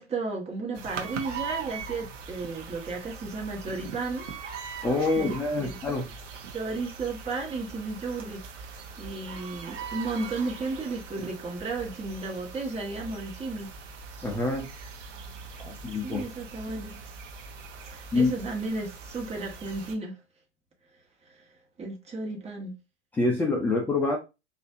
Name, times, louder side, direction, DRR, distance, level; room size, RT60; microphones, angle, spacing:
voice 1, 0.0-4.3 5.0-5.8 6.5-13.7 15.5-15.6 16.0-17.0 17.8-20.2 21.3-21.4 21.8-22.7, right 3 dB, 15° right, 1.2 m, -34 dB
sound 1, 0.7-19.9, right 5 dB, 80° right, 1.0 m, -41 dB
voice 2, 4.8-6.1 14.2-14.7 15.6-16.2 18.1-18.3 23.1-24.2, left 3 dB, 5° left, 0.4 m, -26 dB
4.2 x 2.6 x 2.5 m
hypercardioid pair, 110°, 36 cm